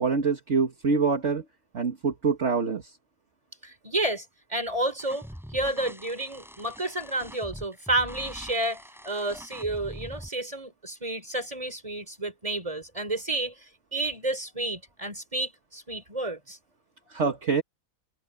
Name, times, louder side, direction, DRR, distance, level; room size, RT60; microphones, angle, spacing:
voice 1, 0.0-1.4 1.7-2.9 17.1-17.6, right 5 dB, 50° right, 2.0 m, -25 dB
voice 2, 3.6-16.6, right 2 dB, 20° right, 4.3 m, -31 dB
sound 1, 5.0-10.3, equal, ahead, 4.5 m, -44 dB
omnidirectional pair, 1.6 m